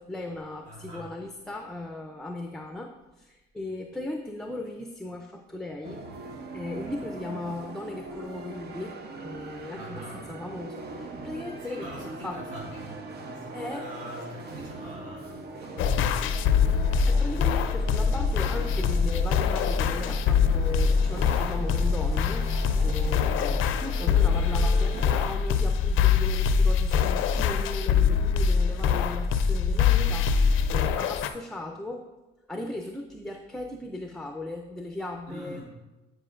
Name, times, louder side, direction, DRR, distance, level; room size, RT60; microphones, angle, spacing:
voice 1, 0.0-6.0 6.5-12.4 13.5-13.9 17.0-22.5 22.8-30.4 30.7-32.1 32.5-35.6, left 2 dB, ahead, 3 dB, 0.5 m, -37 dB
voice 2, 0.6-1.1 9.7-10.2 11.6-16.5 35.3-35.6, equal, 85° right, -5 dB, 2.0 m, -43 dB
sound 1, 5.8-25.2, right 3 dB, 55° right, 0.7 m, -41 dB
sound 2, 15.8-31.3, left 6 dB, 90° left, 0.4 m, -24 dB
9.7 x 5.1 x 2.4 m, 1.1 s
cardioid pair, 90°, 20 cm